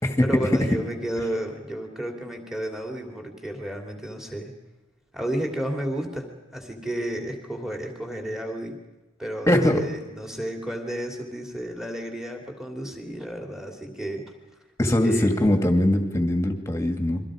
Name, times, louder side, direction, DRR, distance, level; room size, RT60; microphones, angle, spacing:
voice 1, 0.2-4.5 5.1-8.8 9.2-9.6 9.9-14.2 15.0-15.3, right 1 dB, 5° right, 2 dB, 2.8 m, -32 dB
voice 2, 9.5-9.8 14.8-17.2, left 1 dB, 15° left, 5 dB, 2.2 m, -21 dB
29.5 x 23.5 x 5.1 m, 1.0 s
head